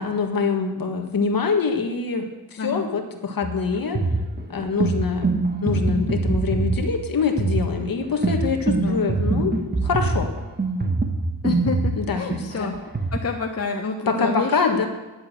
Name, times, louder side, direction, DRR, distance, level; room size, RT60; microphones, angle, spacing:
voice 1, 0.0-4.0 4.5-5.3 5.6-9.6 9.8-10.3 12.0-12.7 14.1-14.9, left 5 dB, 55° left, 4 dB, 1.7 m, -24 dB
sound 1, 3.4-13.2, right 3 dB, 25° right, 1.4 m, -24 dB
voice 2, 11.4-12.7 13.1-14.9, left 4 dB, 35° left, 2 dB, 1.0 m, -28 dB
11.0 x 7.4 x 7.7 m, 1.1 s
cardioid pair, 90°, 41 cm